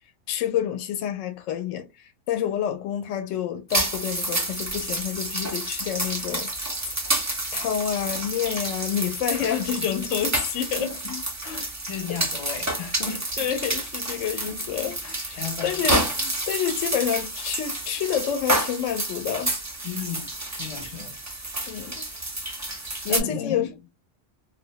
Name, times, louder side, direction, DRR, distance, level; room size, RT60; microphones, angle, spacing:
voice 1, 0.3-6.5 7.5-11.2 12.1-12.2 13.1-19.5 21.7-22.1 23.0-23.7, left 9 dB, 75° left, 0.9 m, -28 dB
sound 1, 3.7-23.2, right 1 dB, 20° right, 0.4 m, -29 dB
voice 2, 9.4-10.0 10.8-11.0 11.4-13.2 14.1-14.6 15.0-16.1 19.8-21.1 23.1-23.6, left 6 dB, 55° left, 0.4 m, -36 dB
2.3 x 2.0 x 2.7 m
omnidirectional pair, 1.3 m